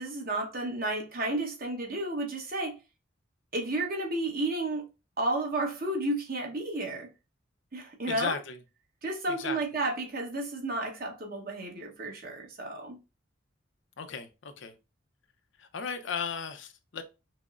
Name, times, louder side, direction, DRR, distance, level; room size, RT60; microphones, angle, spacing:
voice 1, 0.0-2.8 3.5-4.9 5.2-7.1 7.7-8.4 9.0-13.0, right 2 dB, 45° right, 1.0 m, -32 dB
voice 2, 8.0-8.6 9.3-9.6 14.0-14.7 15.6-17.0, left 6 dB, 65° left, 0.5 m, -36 dB
5.8 x 2.0 x 2.4 m
head